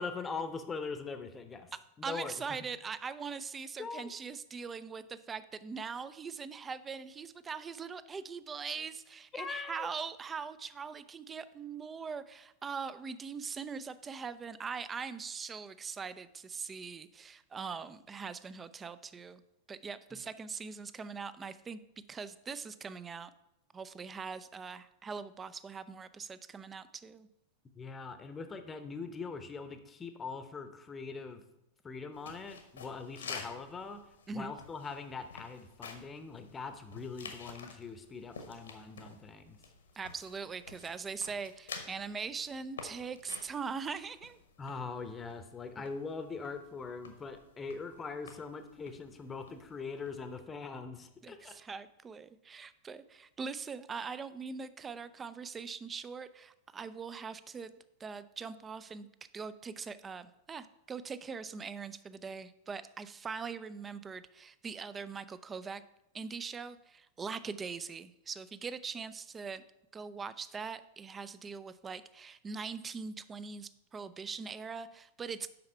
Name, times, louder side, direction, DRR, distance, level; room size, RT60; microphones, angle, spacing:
voice 1, 0.0-1.7 2.0-2.3 3.8-4.1 9.3-9.9 20.1-20.2 27.7-31.4 31.8-34.0 34.3-39.6 44.6-51.6, left 4 dB, 20° left, 9 dB, 0.9 m, -42 dB
voice 2, 2.0-19.4 19.7-21.8 22.1-23.3 23.7-27.3 34.3-34.5 39.9-44.4 51.2-57.7 58.0-59.1 59.3-65.8 66.1-69.6 69.9-75.5, right 5 dB, 20° right, 15 dB, 0.5 m, -41 dB
sound 1, 32.1-50.4, left 5 dB, 70° left, 1.2 m, -51 dB
7.7 x 5.6 x 5.5 m, 0.86 s
figure-of-eight pair, 90°, 0 cm